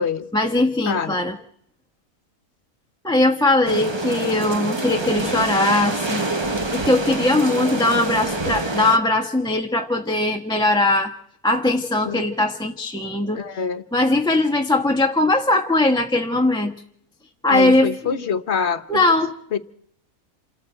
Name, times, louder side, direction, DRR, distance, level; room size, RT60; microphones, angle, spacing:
voice 1, 0.3-1.3 3.0-6.2 6.7-11.1 11.4-13.4 13.9-16.7 17.4-17.9 18.9-19.3, left 2 dB, 5° left, 1.1 m, -20 dB
voice 2, 0.9-1.2 12.0-12.3 13.3-13.8 17.5-19.0 19.5-19.6, left 6 dB, 50° left, 1.2 m, -25 dB
sound 1, 3.7-9.0, right 2 dB, 20° right, 0.8 m, -26 dB
27.5 x 13.5 x 7.9 m
omnidirectional pair, 1.5 m